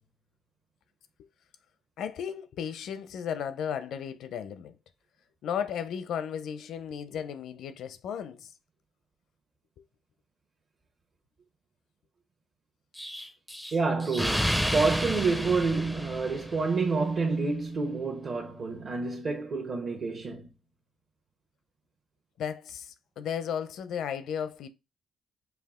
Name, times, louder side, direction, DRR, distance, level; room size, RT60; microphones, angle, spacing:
voice 1, 2.0-4.8 5.4-8.5 22.4-24.7, left 8 dB, 75° left, 0.6 m, -34 dB
Explosion, 13.0-16.8, equal, ahead, 0.5 m, -31 dB
voice 2, 13.7-20.5, right 4 dB, 50° right, 1.0 m, -28 dB
5.7 x 2.4 x 3.6 m
cardioid pair, 105°, 0 cm